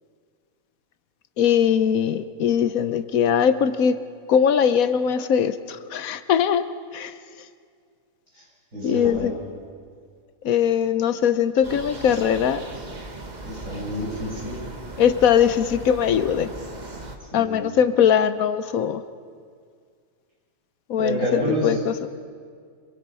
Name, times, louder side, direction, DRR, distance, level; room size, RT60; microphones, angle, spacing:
voice 1, 1.4-4.0 4.3-6.7 6.9-7.1 8.8-9.3 10.4-12.6 15.0-16.5 17.3-19.0 20.9-22.1, left 8 dB, 80° left, 12 dB, 1.3 m, -21 dB
voice 2, 8.7-9.3 13.4-14.6 17.3-17.7 21.0-21.8, equal, 65° right, -6 dB, 8.0 m, -28 dB
sound 1, 11.6-17.2, right 2 dB, 30° right, 1.6 m, -38 dB
26.5 x 22.0 x 5.5 m, 2.1 s
omnidirectional pair, 1.5 m